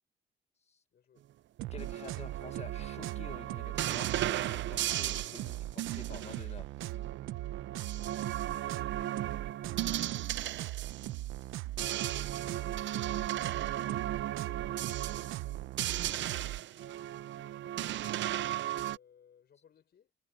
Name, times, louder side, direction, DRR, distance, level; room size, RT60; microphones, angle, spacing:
voice 1, 0.9-1.3 9.5-13.9 14.2-20.1, left 8 dB, 55° left, 5.7 m, -67 dB
sound 1, 1.6-16.6, right 15 dB, 90° right, 0.9 m, -40 dB
voice 2, 1.7-6.7 11.4-11.5, left 5 dB, 35° left, 1.8 m, -49 dB
sound 2, 1.8-11.3 11.7-19.0, right 13 dB, 70° right, 0.6 m, -36 dB
cardioid pair, 90°, 20 cm